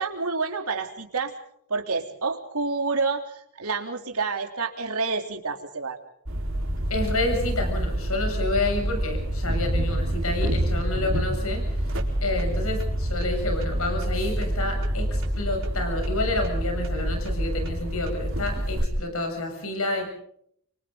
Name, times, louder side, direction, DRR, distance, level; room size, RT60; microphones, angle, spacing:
voice 1, 0.0-1.3 1.7-6.0, right 4 dB, 85° right, 4 dB, 3.4 m, -28 dB
sound 1, 6.3-18.9, right 1 dB, 65° right, 4.3 m, -27 dB
voice 2, 6.9-11.6 12.2-20.1, left 2 dB, 75° left, 4 dB, 7.3 m, -29 dB
30.0 x 25.5 x 3.9 m, 0.68 s
head